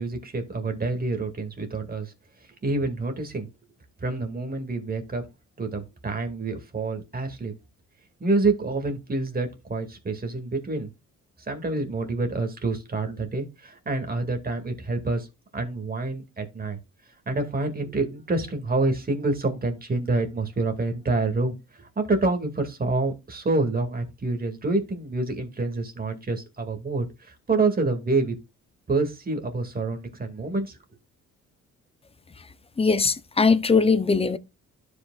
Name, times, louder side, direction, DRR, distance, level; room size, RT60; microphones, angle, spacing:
voice 1, 0.0-2.1 2.4-3.5 4.0-5.2 5.6-7.5 8.2-10.9 11.5-15.3 15.5-16.8 17.3-28.4 28.9-30.8, right 3 dB, 30° right, 2.1 m, -27 dB
voice 2, 32.8-34.4, left 4 dB, 20° left, 0.6 m, -20 dB
12.5 x 5.1 x 2.3 m
cardioid pair, 90°, 30 cm